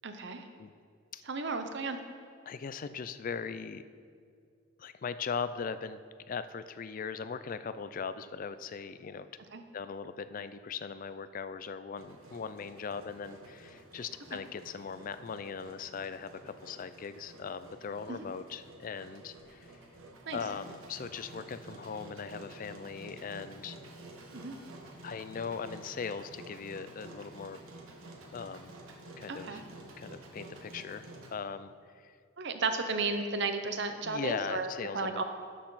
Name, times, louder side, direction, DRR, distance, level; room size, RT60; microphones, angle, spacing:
voice 1, 0.0-0.5 1.3-2.0 9.5-9.6 18.1-18.3 20.3-20.4 24.3-24.5 29.3-29.6 32.4-34.7 34.9-35.2, right 4 dB, 55° right, 7 dB, 0.7 m, -33 dB
voice 2, 2.5-3.8 4.8-6.0 6.3-9.3 9.7-19.8 20.3-23.8 25.0-27.6 28.3-28.7 29.2-29.6 30.0-32.2 34.0-35.2, left 6 dB, 40° left, 13 dB, 0.3 m, -39 dB
Engine, 12.0-31.3, right 2 dB, 80° right, 1.2 m, -51 dB
11.5 x 6.6 x 4.0 m, 2.2 s
head